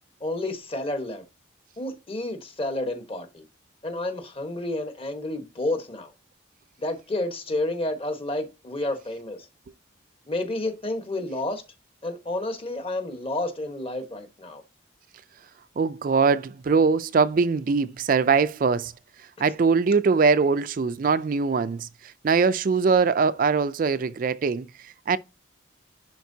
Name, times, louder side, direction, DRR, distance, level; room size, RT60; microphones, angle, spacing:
voice 1, 0.2-1.2 1.8-3.4 3.8-6.1 6.8-9.5 10.3-11.6 12.0-14.6, left 2 dB, 30° left, 1.3 m, -30 dB
voice 2, 15.8-18.9 19.4-25.2, right 5 dB, 45° right, 0.3 m, -22 dB
10.5 x 4.5 x 2.8 m
head